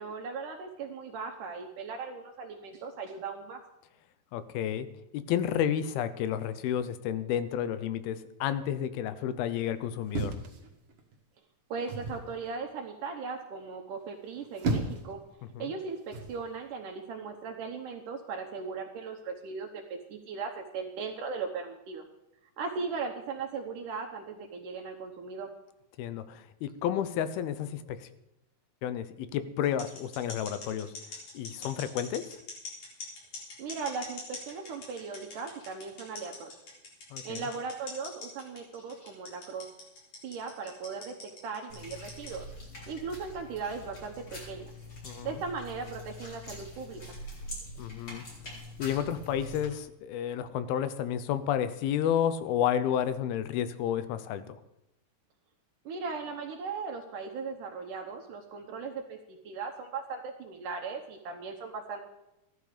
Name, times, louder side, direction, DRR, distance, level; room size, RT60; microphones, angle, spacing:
voice 1, 0.0-3.6 11.7-15.2 15.6-22.0 22.6-25.5 33.6-36.5 37.2-39.8 40.2-42.5 42.9-44.7 45.2-47.0 55.9-62.0, right 5 dB, 70° right, 3 dB, 2.4 m, -38 dB
voice 2, 4.3-4.9 5.1-10.4 15.6-15.7 26.0-28.1 28.8-30.9 31.3-32.4 37.1-37.4 45.0-45.4 47.8-48.2 48.8-54.6, left 9 dB, 90° left, 13 dB, 2.7 m, -31 dB
sound 1, 10.1-11.2 11.9-12.3 14.2-15.1 16.1-16.4, right 2 dB, 50° right, 1.9 m, -33 dB
sound 2, 29.6-42.4, left 3 dB, 50° left, 5.3 m, -43 dB
sound 3, 41.7-49.7, left 1 dB, 35° left, 4.9 m, -44 dB
14.5 x 12.5 x 5.0 m, 0.89 s
omnidirectional pair, 4.3 m